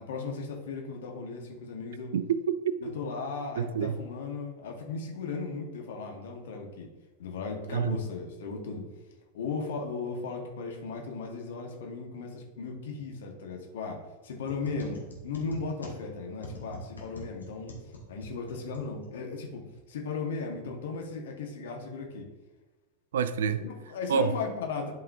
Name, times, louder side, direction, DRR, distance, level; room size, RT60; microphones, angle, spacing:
voice 1, 0.0-2.1 2.8-6.9 7.2-8.9 9.3-17.7 18.1-22.3 23.6-24.9, left 4 dB, 60° left, 1.4 m, -36 dB
voice 2, 2.1-2.9 3.6-4.0 7.7-8.0 23.1-23.6 24.1-24.4, right 7 dB, 60° right, 0.4 m, -28 dB
sound 1, 14.3-19.4, equal, 75° left, 1.6 m, -45 dB
12.0 x 4.7 x 2.7 m
figure-of-eight pair, 90°, 0 cm